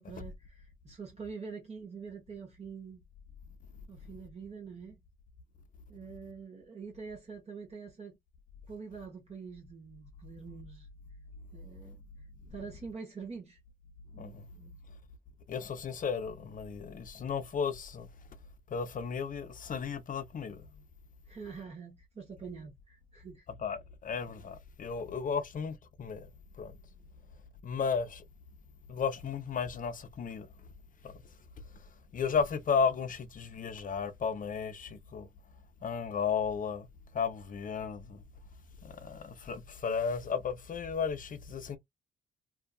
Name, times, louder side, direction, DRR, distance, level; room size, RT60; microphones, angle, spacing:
voice 1, 0.0-3.0 3.9-5.0 5.9-8.2 8.7-10.9 11.5-12.0 12.5-13.6 14.1-14.8 21.3-23.5 24.9-25.0, right 5 dB, 35° right, 1.0 m, -45 dB
voice 2, 14.2-14.5 15.5-18.1 18.7-20.6 23.6-26.3 26.6-26.8 27.6-28.2 28.9-30.5 31.0-31.1 32.1-35.3 35.8-36.9 37.1-38.2 38.8-41.8, left 6 dB, 45° left, 0.6 m, -34 dB
2.6 x 2.3 x 2.3 m
cardioid pair, 90°, 20 cm